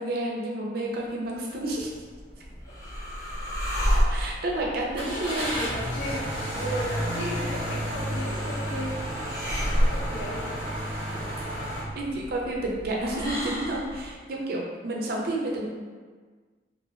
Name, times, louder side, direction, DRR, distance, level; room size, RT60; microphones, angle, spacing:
voice 1, 0.0-1.9 4.1-5.5 11.9-15.7, right 1 dB, 55° right, -2 dB, 0.5 m, -30 dB
sound 1, 1.7-1.9 2.4-2.5 4.9-11.8, equal, 30° right, 1.1 m, -32 dB
sound 2, 2.0-14.1, equal, 20° left, 0.6 m, -31 dB
voice 2, 4.5-8.9 9.4-10.5, equal, 75° left, -4 dB, 0.7 m, -36 dB
2.8 x 2.6 x 2.7 m, 1.5 s
head